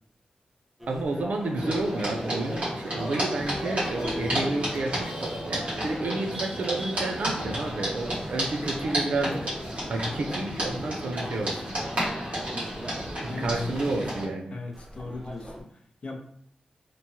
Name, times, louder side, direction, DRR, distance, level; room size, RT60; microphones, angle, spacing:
sound 1, 0.8-2.6 3.4-9.9 10.1-13.9 14.7-15.6, equal, 10° right, 0.4 m, -42 dB
voice 1, 0.9-9.5 9.9-11.6 13.2-14.6, right 2 dB, 75° right, 2 dB, 0.5 m, -30 dB
sound 2, 1.6-14.2, equal, 55° right, 1.4 m, -32 dB
voice 2, 14.5-15.7 16.0-16.2, left 3 dB, 55° left, 1 dB, 0.6 m, -38 dB
3.0 x 2.2 x 2.7 m, 0.65 s
wide cardioid pair, 95°, 3 cm